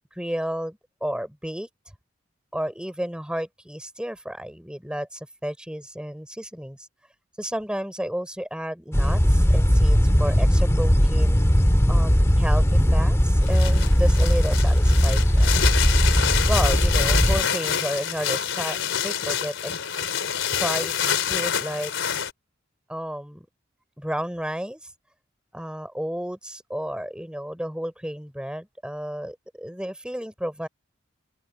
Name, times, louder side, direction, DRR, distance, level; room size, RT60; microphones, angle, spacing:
voice 1, 0.1-1.7 2.5-6.8 7.4-11.4 11.9-15.8 16.5-19.7 20.5-21.9 22.9-23.5 24.0-24.8 25.5-30.7, equal, 5° right, 3.8 m, -32 dB
sound 1, 8.9-17.4, equal, 15° left, 1.8 m, -19 dB
sound 2, 13.4-22.3, left 8 dB, 75° left, 3.8 m, -27 dB
open air
head